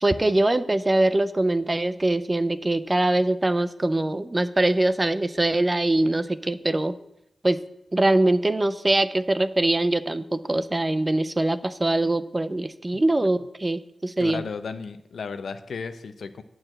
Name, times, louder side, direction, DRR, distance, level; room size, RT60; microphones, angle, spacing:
voice 1, 0.0-7.0 7.4-7.6 7.9-14.4, right 2 dB, 20° right, 12 dB, 0.4 m, -23 dB
voice 2, 14.2-16.4, left 5 dB, 70° left, 10 dB, 0.6 m, -34 dB
9.7 x 4.6 x 7.6 m, 0.82 s
wide cardioid pair, 105°, 0 cm